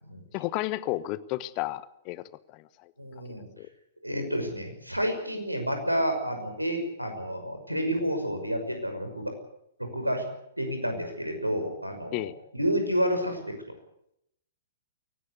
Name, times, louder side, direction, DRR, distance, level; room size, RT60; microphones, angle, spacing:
voice 1, 0.3-2.2 2.5-2.9 3.6-3.7 12.1-12.3, left 17 dB, 30° left, 17 dB, 1.1 m, -32 dB
voice 2, 3.0-3.5 4.0-9.3 9.8-10.2 10.6-13.6, equal, 90° right, 6 dB, 5.9 m, -30 dB
22.5 x 18.5 x 8.1 m, 0.77 s
figure-of-eight pair, 115°, 0 cm